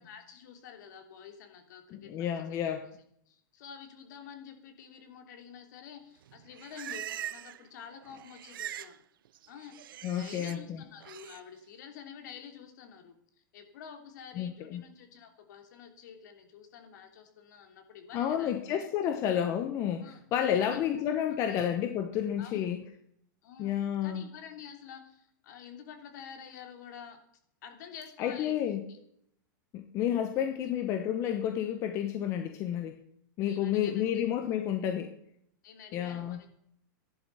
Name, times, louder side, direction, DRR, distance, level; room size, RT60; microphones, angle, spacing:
voice 1, 0.0-2.6 3.3-9.0 9.5-13.2 13.5-18.6 20.0-20.2 20.6-20.8 21.5-21.7 22.4-22.7 23.4-27.2 27.6-28.5 28.9-29.0 30.3-30.5 33.5-34.2 35.6-36.5, left 8 dB, 55° left, 5 dB, 3.2 m, -49 dB
voice 2, 1.9-2.9 10.0-10.8 14.4-14.8 18.1-22.8 23.6-24.3 28.2-28.8 29.7-33.0 33.4-35.1 35.9-36.4, left 10 dB, 25° left, 6 dB, 1.0 m, -30 dB
Livestock farm animals working animals, 6.2-7.7 7.9-9.0 9.2-10.6 11.0-11.4, right 12 dB, 80° right, 0.7 m, -42 dB
14.5 x 11.0 x 5.6 m, 0.70 s
supercardioid pair, 170°, 11 cm